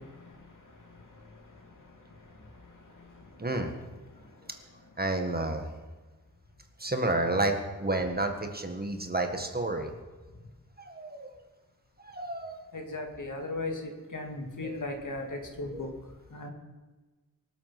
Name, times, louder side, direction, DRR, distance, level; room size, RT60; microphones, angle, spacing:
voice 1, 0.0-4.9 10.4-10.5 12.7-15.9 16.3-16.5, left 2 dB, 55° left, 2.7 m, -40 dB
voice 2, 3.4-3.7 5.0-5.7 6.8-9.9 10.8-11.3 12.0-12.6 14.6-14.8 15.7-15.8, right 2 dB, 25° right, 1.7 m, -30 dB
23.5 x 8.0 x 6.0 m
wide cardioid pair, 105°, 37 cm